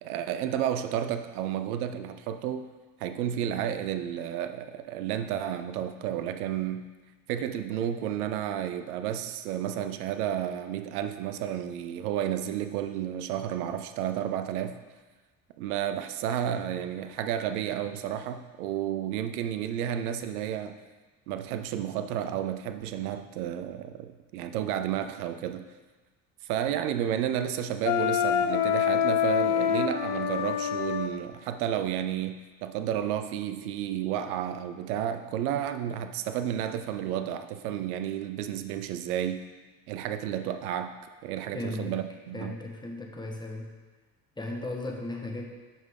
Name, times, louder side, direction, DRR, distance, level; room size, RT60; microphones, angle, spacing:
voice 1, 0.0-2.7 3.0-6.9 7.3-14.8 15.6-20.8 21.3-25.7 26.5-39.4 39.9-40.9 41.2-42.6, right 10 dB, 75° right, 9 dB, 0.7 m, -31 dB
Wind instrument woodwind instrument, 27.9-31.1, left 9 dB, 70° left, 0.7 m, -26 dB
voice 2, 41.5-42.0 42.3-43.7 44.4-45.5, left 2 dB, 10° left, 0 dB, 1.5 m, -36 dB
9.3 x 5.6 x 3.7 m, 1.3 s
hypercardioid pair, 60°, 45 cm